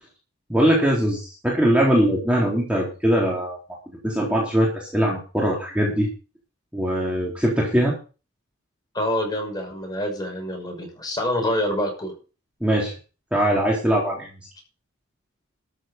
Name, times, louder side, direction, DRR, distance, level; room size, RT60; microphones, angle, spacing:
voice 1, 0.5-3.6 4.0-6.1 6.7-7.9 12.6-12.9 13.3-14.3, equal, 5° right, -3 dB, 3.8 m, -21 dB
voice 2, 8.9-12.1, left 1 dB, 20° left, 2 dB, 6.2 m, -26 dB
13.5 x 7.6 x 6.8 m, 0.34 s
head